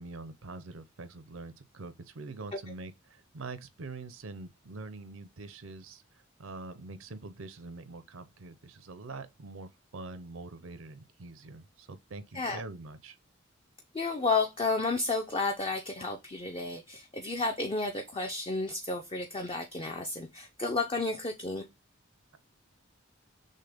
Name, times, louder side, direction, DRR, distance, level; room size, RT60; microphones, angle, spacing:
voice 1, 0.0-13.2, right 3 dB, 85° right, 0.6 m, -44 dB
voice 2, 13.9-21.7, left 3 dB, 25° left, 0.4 m, -32 dB
6.5 x 2.2 x 3.4 m
head